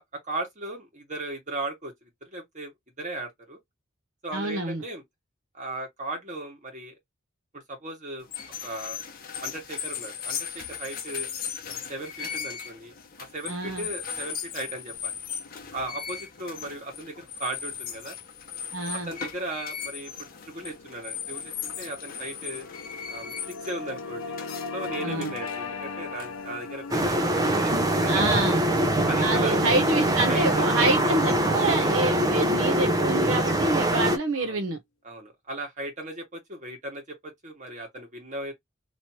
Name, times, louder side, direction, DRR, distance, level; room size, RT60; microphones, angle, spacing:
voice 1, 0.0-3.6 4.2-5.0 5.5-7.0 7.5-8.3 8.6-9.0 9.4-11.3 11.7-15.1 15.7-18.2 19.1-20.1 20.5-22.7 23.1-24.4 24.7-28.6 29.1-29.6 30.3-30.9 32.1-32.4 34.3-34.6 35.0-38.5, right 2 dB, 35° right, 1.6 m, -37 dB
voice 2, 4.3-4.8 13.5-13.8 18.7-19.1 25.0-25.3 28.1-28.6 29.2-34.8, right 2 dB, 75° right, 0.8 m, -27 dB
sound 1, 8.2-27.5, left 8 dB, 45° left, 0.8 m, -38 dB
sound 2, 19.3-31.9, left 4 dB, 85° left, 0.6 m, -40 dB
sound 3, 26.9-34.2, right 1 dB, 20° right, 0.5 m, -23 dB
3.1 x 2.9 x 2.8 m
head